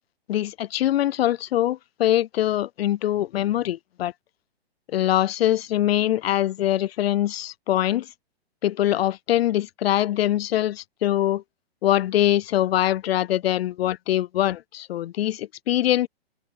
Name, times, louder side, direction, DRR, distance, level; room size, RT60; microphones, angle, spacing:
voice 1, 0.3-4.1 4.9-8.1 8.6-11.4 11.8-16.1, left 13 dB, 70° left, 0.5 m, -23 dB
hypercardioid pair, 125°, 31 cm